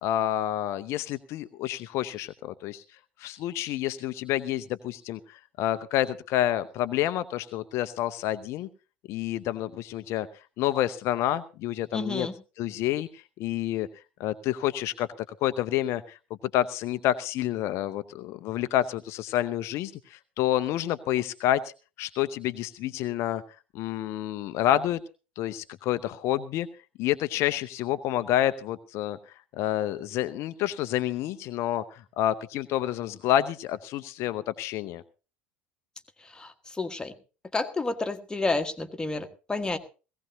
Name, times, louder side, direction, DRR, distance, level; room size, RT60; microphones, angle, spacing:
voice 1, 0.0-2.8 3.2-8.7 9.1-10.3 10.6-12.3 12.6-13.9 14.2-15.1 15.4-16.2 16.5-21.6 22.0-23.4 23.7-25.0 25.4-26.7 27.0-29.2 29.5-35.0, left 12 dB, 45° left, 13 dB, 0.6 m, -28 dB
voice 2, 11.9-12.3 36.2-37.1 37.5-39.8, left 3 dB, 10° left, 7 dB, 1.4 m, -30 dB
18.0 x 16.5 x 2.8 m, 0.33 s
figure-of-eight pair, 70°, 6 cm